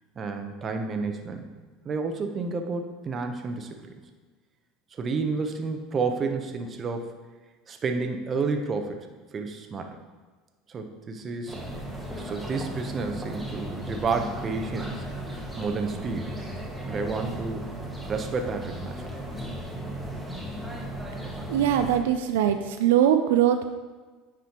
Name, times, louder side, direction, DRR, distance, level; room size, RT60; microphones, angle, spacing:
voice 1, 0.2-1.5 1.8-4.0 4.9-7.1 7.7-10.0 10.7-11.8 12.2-15.1 15.6-16.4 16.9-17.7 18.1-19.0, right 4 dB, 35° right, 5 dB, 0.8 m, -30 dB
sound 1, 11.5-22.0, right 1 dB, 5° right, 1.3 m, -36 dB
voice 2, 21.5-23.7, right 10 dB, 90° right, 7 dB, 0.4 m, -22 dB
9.3 x 5.0 x 3.0 m, 1.3 s
supercardioid pair, 105°, 0 cm